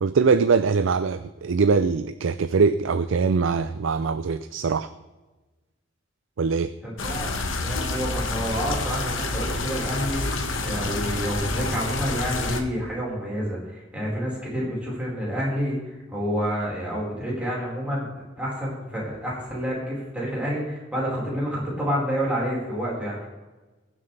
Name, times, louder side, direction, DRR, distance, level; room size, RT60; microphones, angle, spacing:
voice 1, 0.0-4.9 6.4-6.7, right 5 dB, 70° right, 12 dB, 0.5 m, -22 dB
voice 2, 6.8-7.3 7.6-10.3 10.6-18.1 18.4-23.3, equal, 5° right, -6 dB, 4.7 m, -29 dB
sound 1, 7.0-12.6, left 2 dB, 70° left, 1.3 m, -28 dB
21.0 x 7.6 x 3.4 m, 1.2 s
head